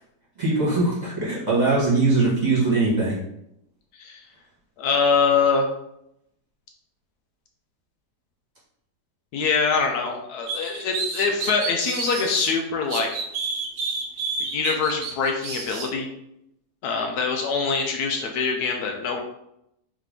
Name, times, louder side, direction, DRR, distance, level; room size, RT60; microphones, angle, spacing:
voice 1, 0.4-3.2, right 3 dB, 25° right, -8 dB, 1.5 m, -21 dB
voice 2, 4.8-5.7 9.3-13.2 14.5-16.1 16.8-19.2, left 5 dB, 75° left, 2 dB, 1.1 m, -24 dB
sound 1, 10.5-12.5 12.9-15.9, right 5 dB, 75° right, 1.1 m, -30 dB
3.7 x 3.2 x 3.6 m, 0.79 s
omnidirectional pair, 1.7 m